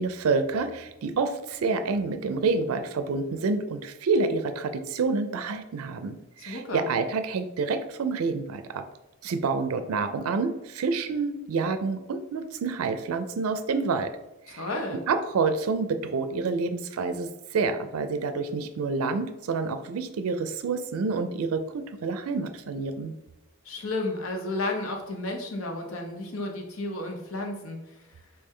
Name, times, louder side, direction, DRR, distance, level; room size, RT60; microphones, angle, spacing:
voice 1, 0.0-6.2 6.4-8.8 9.2-14.1 14.5-14.6 15.1-23.1, right 4 dB, 90° right, 9 dB, 0.4 m, -28 dB
voice 2, 6.5-6.9 14.5-15.0 23.6-28.0, left 2 dB, 70° left, 2 dB, 0.9 m, -32 dB
4.3 x 3.6 x 3.2 m, 0.96 s
head